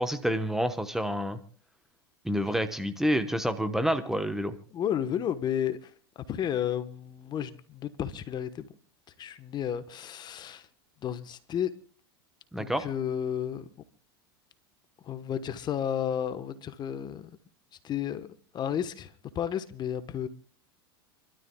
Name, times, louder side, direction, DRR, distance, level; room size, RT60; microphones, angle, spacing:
voice 1, 0.0-1.4 2.2-4.5 12.5-12.9, equal, 5° right, 1.0 m, -28 dB
voice 2, 4.7-5.9 6.3-8.7 9.2-10.7 11.0-11.7 12.6-13.7 15.0-17.3 17.8-18.3 18.5-20.3, left 9 dB, 35° left, 1.1 m, -32 dB
29.0 x 12.5 x 2.3 m
hypercardioid pair, 105°, 13 cm